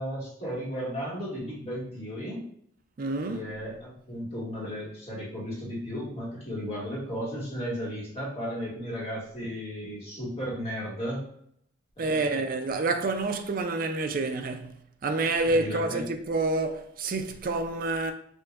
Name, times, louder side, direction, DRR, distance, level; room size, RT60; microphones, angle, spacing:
voice 1, 0.0-2.4 3.3-11.2 12.0-12.3 15.4-16.0, equal, 30° left, 1.5 m, -35 dB
voice 2, 3.0-3.4 12.0-14.7 15.0-18.1, right 3 dB, 45° right, 0.4 m, -28 dB
5.2 x 2.6 x 2.4 m
head